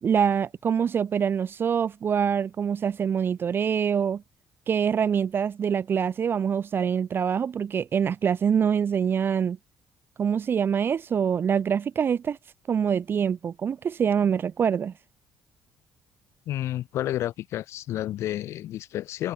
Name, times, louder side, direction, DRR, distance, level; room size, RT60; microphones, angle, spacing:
voice 1, 0.0-4.2 4.7-9.6 10.2-12.4 12.7-14.9, right 7 dB, 45° right, 0.5 m, -25 dB
voice 2, 16.5-19.3, left 13 dB, 60° left, 0.6 m, -30 dB
hypercardioid pair, 50°, 5 cm